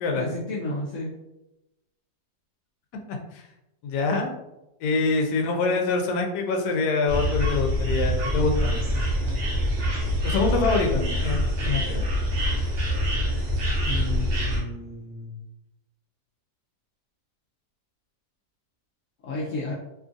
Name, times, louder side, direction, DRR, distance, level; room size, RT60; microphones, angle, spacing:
voice 1, 0.1-1.1 13.8-15.4 19.2-19.7, left 2 dB, 70° left, -5 dB, 0.8 m, -32 dB
voice 2, 3.8-4.3 4.8-8.8 10.2-12.0, left 3 dB, 85° left, 3 dB, 1.2 m, -25 dB
sound 1, 7.1-14.6, equal, 55° right, 0.9 m, -25 dB
3.0 x 2.4 x 2.5 m, 0.92 s
omnidirectional pair, 1.7 m